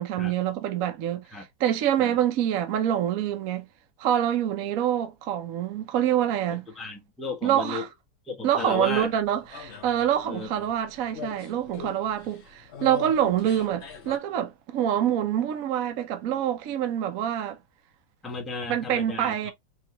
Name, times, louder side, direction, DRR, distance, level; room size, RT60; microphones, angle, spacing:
voice 1, 0.0-3.7 4.0-6.7 7.4-7.9 8.4-17.6 18.7-19.5, right 10 dB, 60° right, 0.9 m, -26 dB
voice 2, 6.5-7.8 8.3-9.1 10.2-10.5 18.2-19.5, left 4 dB, ahead, 0.7 m, -34 dB
sound 1, 8.7-14.2, left 7 dB, 50° left, 0.9 m, -43 dB
4.6 x 3.2 x 2.9 m
omnidirectional pair, 2.1 m